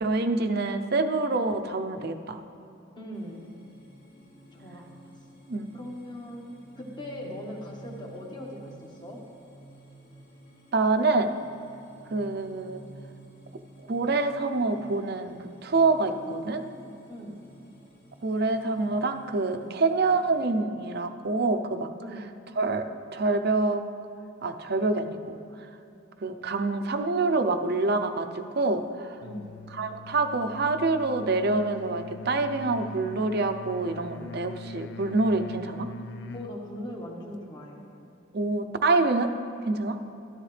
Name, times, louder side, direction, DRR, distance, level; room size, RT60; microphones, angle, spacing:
voice 1, 0.0-2.4 5.5-5.7 10.7-11.3 12.1-12.8 13.9-16.6 18.2-21.9 22.6-23.8 24.4-25.4 26.2-29.2 29.8-35.9 38.3-39.3 39.6-40.0, right 3 dB, 55° right, 7 dB, 0.6 m, -26 dB
voice 2, 3.0-3.5 4.5-4.9 5.7-6.4 6.8-9.2 16.2-17.4 22.0-22.3 29.2-29.5 36.3-37.9, equal, 20° left, -1 dB, 1.4 m, -40 dB
sound 1, 3.1-20.4, right 2 dB, 75° left, 2.6 m, -52 dB
sound 2, 29.2-36.6, left 2 dB, 60° left, 0.4 m, -42 dB
13.5 x 13.0 x 3.3 m, 2.7 s
head